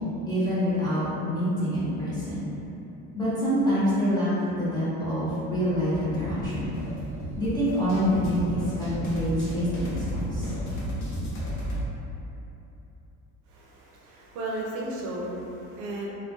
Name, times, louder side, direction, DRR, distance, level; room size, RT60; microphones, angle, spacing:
voice 1, 0.0-2.4 3.1-6.7 7.4-10.5, equal, 10° left, -12 dB, 0.4 m, -26 dB
sound 1, 6.3-11.9, equal, 70° left, 0.8 m, -33 dB
voice 2, 13.5-16.1, right 1 dB, 60° right, -3 dB, 0.5 m, -34 dB
2.3 x 2.2 x 3.7 m, 2.9 s
cardioid pair, 180°, 34 cm